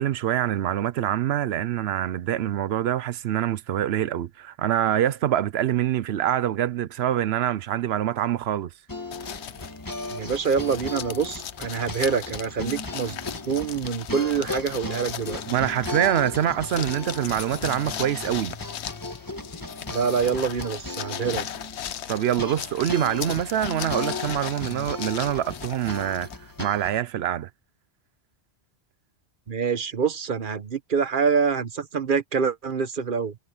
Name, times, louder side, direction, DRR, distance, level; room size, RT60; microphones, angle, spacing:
voice 1, 0.0-8.7 15.5-18.5 22.1-26.3 26.6-27.5, right 11 dB, 70° right, 0.8 m, -25 dB
sound 1, 8.9-27.0, left 2 dB, 20° left, 1.5 m, -36 dB
sound 2, 9.1-26.6, left 9 dB, 70° left, 1.0 m, -38 dB
voice 2, 10.1-13.2 13.5-15.4 19.9-21.5 29.5-33.4, right 6 dB, 50° right, 1.1 m, -26 dB
omnidirectional pair, 1.2 m